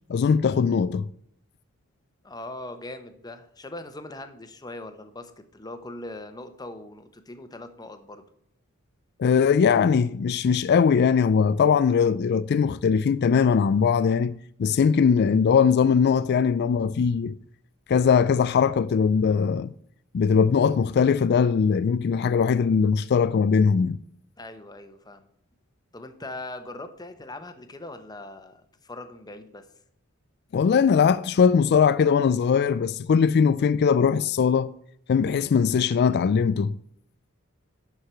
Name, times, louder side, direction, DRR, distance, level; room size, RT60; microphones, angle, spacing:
voice 1, 0.1-1.1 9.2-17.3 17.9-19.7 20.1-24.0 30.5-34.7 35.1-36.7, left 6 dB, 50° left, 0.3 m, -20 dB
voice 2, 2.2-8.2 24.4-25.3 25.9-29.7, left 2 dB, 20° left, 0.9 m, -40 dB
11.5 x 4.7 x 5.7 m
head